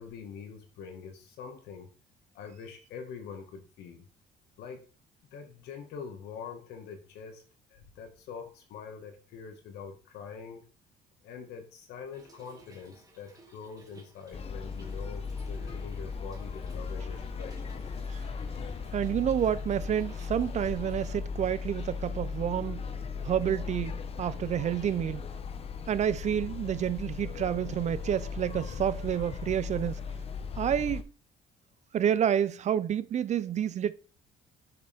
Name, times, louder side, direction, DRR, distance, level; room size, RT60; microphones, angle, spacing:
voice 1, 0.0-1.9 2.3-4.1 4.6-4.9 5.3-7.4 7.7-10.7 11.2-17.6, left 6 dB, 80° left, 1.8 m, -44 dB
Trickle dribble / Fill (with liquid), 12.1-21.1, right 2 dB, 20° right, 2.2 m, -57 dB
sound 1, 14.3-31.0, left 5 dB, 35° left, 0.8 m, -37 dB
voice 2, 18.9-22.9 23.2-25.2 25.9-30.0 30.6-31.0 31.9-33.9, right 9 dB, 45° right, 0.5 m, -29 dB
6.7 x 6.6 x 3.5 m
cardioid pair, 110°, 17 cm